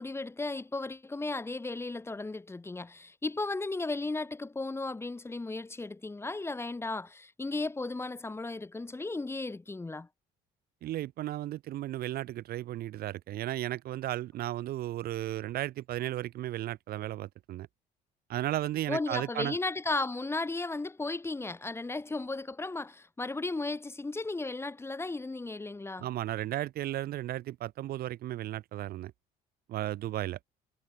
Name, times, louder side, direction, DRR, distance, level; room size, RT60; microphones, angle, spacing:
voice 1, 0.0-10.1 18.9-26.1, left 3 dB, 15° left, 1.5 m, -35 dB
voice 2, 10.8-17.7 18.3-19.6 26.0-29.1 29.7-30.4, right 14 dB, 65° right, 0.9 m, -34 dB
cardioid pair, 110°, 17 cm